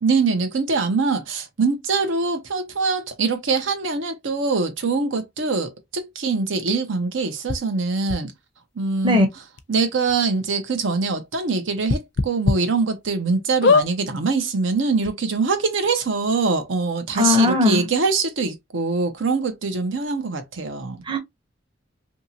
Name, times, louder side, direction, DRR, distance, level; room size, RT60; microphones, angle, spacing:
voice 1, 0.0-8.3 8.8-9.4 9.7-21.0, right 4 dB, 75° right, 0.7 m, -23 dB
sound 1, 7.5-7.6 8.1-8.2 9.2-9.3 9.6-9.7 10.1-10.2 11.9-12.6 13.0-13.1 13.6-13.9 14.7-14.8 15.0-15.1, left 4 dB, 60° left, 0.4 m, -19 dB
voice 2, 17.1-17.8 21.1-21.2, left 2 dB, 25° right, 0.7 m, -18 dB
2.8 x 2.7 x 2.7 m
head